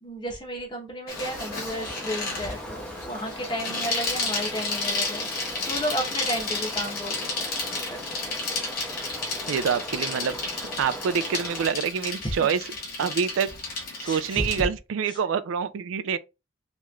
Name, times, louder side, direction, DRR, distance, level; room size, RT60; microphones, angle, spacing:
voice 1, 0.0-7.5 7.9-8.3 12.2-12.5 12.8-12.9 14.0-14.7 15.0-15.2, equal, 25° left, 0.9 m, -33 dB
Bicycle, 1.1-14.7, left 3 dB, 45° left, 1.1 m, -32 dB
sound 1, 1.1-11.7, equal, 5° left, 0.6 m, -39 dB
voice 2, 9.5-10.4 10.8-12.6 13.0-13.5 14.0-16.2, right 7 dB, 85° right, 0.3 m, -26 dB
3.1 x 3.0 x 2.3 m
head